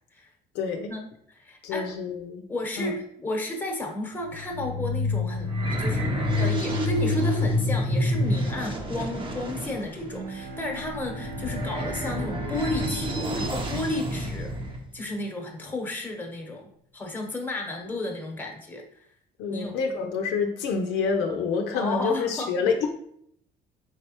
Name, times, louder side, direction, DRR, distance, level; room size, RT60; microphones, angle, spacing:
voice 1, 0.5-0.9 1.6-2.4 2.8-2.9 19.4-22.9, left 5 dB, 90° left, 3 dB, 0.6 m, -27 dB
voice 2, 1.3-1.9 2.5-2.9 3.2-5.5 5.8-6.1 6.4-14.5 14.9-19.0 19.5-19.7 21.7-22.5, left 2 dB, 10° left, 1 dB, 1.0 m, -33 dB
sound 1, 4.3-14.8, left 1 dB, 30° right, 0.8 m, -28 dB
Bowed string instrument, 10.1-15.2, right 1 dB, 90° right, 0.7 m, -41 dB
4.8 x 3.3 x 2.9 m, 0.68 s
cardioid pair, 110°, 17 cm